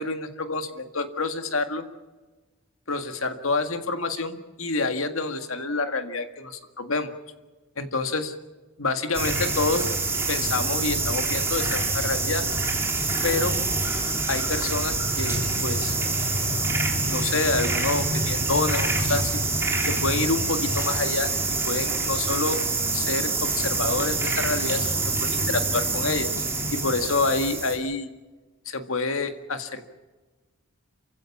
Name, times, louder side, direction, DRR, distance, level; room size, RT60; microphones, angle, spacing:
voice 1, 0.0-1.8 2.9-7.1 7.8-8.3 8.8-9.9 10.3-12.4 13.2-13.6 14.3-16.0 17.1-19.4 19.9-21.3 21.7-22.6 22.9-26.3 26.7-28.1 28.7-29.8, left 3 dB, 65° left, 8 dB, 1.8 m, -28 dB
sound 1, 9.1-27.8, right 3 dB, 10° right, 3.6 m, -26 dB
28.0 x 16.0 x 7.2 m, 1.3 s
head